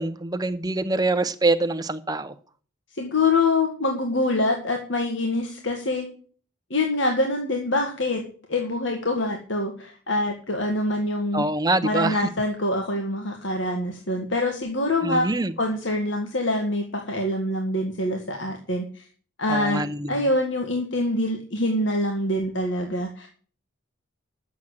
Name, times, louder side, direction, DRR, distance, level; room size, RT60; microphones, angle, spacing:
voice 1, 0.0-2.3 11.3-12.2 15.0-15.5 19.5-20.3, right 2 dB, 20° right, 0.8 m, -25 dB
voice 2, 3.0-6.1 6.7-8.2 8.5-11.4 11.8-15.3 15.6-19.0 19.4-19.8 20.1-23.3, left 2 dB, 65° left, 1.8 m, -25 dB
10.0 x 7.5 x 7.9 m
head